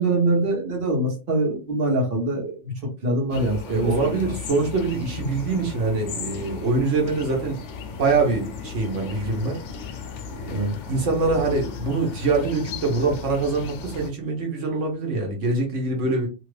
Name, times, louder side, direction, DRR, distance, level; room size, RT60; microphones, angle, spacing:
voice 1, 0.0-2.7 3.0-4.3 10.5-10.7, right 2 dB, 50° right, -1 dB, 1.2 m, -24 dB
sound 1, 3.3-14.1, left 6 dB, 75° left, 0.9 m, -36 dB
voice 2, 3.7-7.6 8.0-9.6 10.3-10.6 10.9-16.3, right 3 dB, 75° right, 0 dB, 1.3 m, -24 dB
2.9 x 2.4 x 3.2 m, 0.31 s
omnidirectional pair, 1.3 m